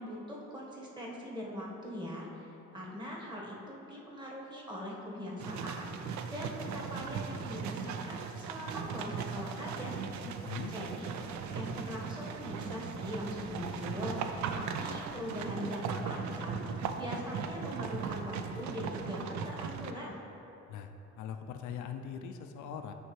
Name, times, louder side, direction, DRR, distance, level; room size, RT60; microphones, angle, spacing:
voice 1, 0.0-9.9 10.7-20.2, equal, 15° right, -4 dB, 1.2 m, -42 dB
sound 1, 5.4-19.9, right 6 dB, 70° right, 0.4 m, -38 dB
voice 2, 10.2-10.7 20.7-22.9, left 7 dB, 75° left, 6 dB, 0.4 m, -41 dB
9.2 x 3.3 x 3.1 m, 3.0 s
cardioid pair, 90°, 30 cm